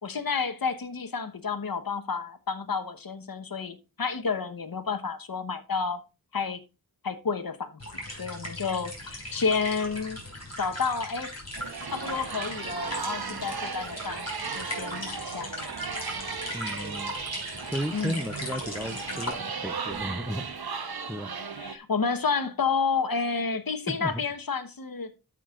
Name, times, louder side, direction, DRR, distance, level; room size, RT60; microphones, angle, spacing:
voice 1, 0.0-6.0 6.3-6.6 7.0-7.7 8.1-10.2 10.6-11.4 11.9-16.0 17.9-18.2 21.6-25.1, left 5 dB, 60° left, 1.1 m, -30 dB
sound 1, 7.8-19.3, left 1 dB, 40° left, 5.1 m, -38 dB
sound 2, 11.5-21.8, right 5 dB, 70° right, 1.0 m, -36 dB
voice 2, 16.5-17.2 17.6-20.4 21.1-21.3 23.9-24.2, equal, 5° right, 0.5 m, -34 dB
13.0 x 6.1 x 2.4 m
wide cardioid pair, 55°, 39 cm